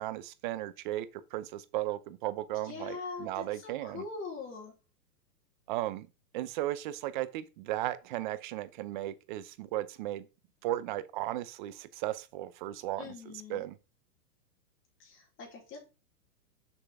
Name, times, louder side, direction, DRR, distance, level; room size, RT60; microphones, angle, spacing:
voice 1, 0.0-4.0 5.7-6.1 6.3-10.3 10.6-13.8, right 14 dB, 30° right, 0.6 m, -36 dB
voice 2, 2.6-4.7 13.0-13.6 15.0-15.8, left 4 dB, 25° left, 3.7 m, -42 dB
6.8 x 5.7 x 3.5 m
hypercardioid pair, 140°, 49 cm